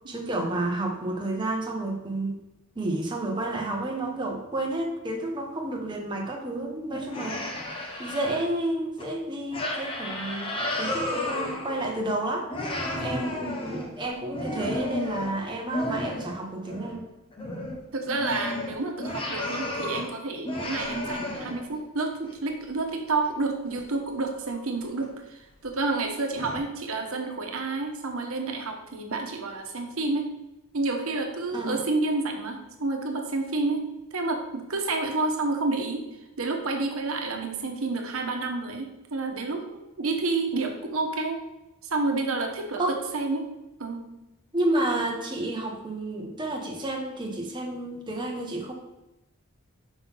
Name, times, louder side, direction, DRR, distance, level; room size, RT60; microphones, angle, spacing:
voice 1, 0.1-2.4 2.8-12.5 12.7-17.1 31.5-31.8 42.8-42.9 44.5-48.7, right 1 dB, 20° right, 0 dB, 0.9 m, -30 dB
sound 1, 6.9-8.4 9.0-9.1 9.5-12.2 12.5-16.4 16.7-17.0 17.3-20.1 20.4-21.8 22.3-22.4 23.7-23.8 24.3-24.6 25.0-25.1 25.7-25.8 26.3-26.6, left 1 dB, 25° left, 0.9 m, -32 dB
voice 2, 12.9-13.3 17.9-30.3 30.7-33.8 34.1-41.4 41.8-43.5 43.8-44.1, right 3 dB, 80° right, 3 dB, 1.1 m, -29 dB
5.8 x 3.9 x 5.5 m, 0.99 s
head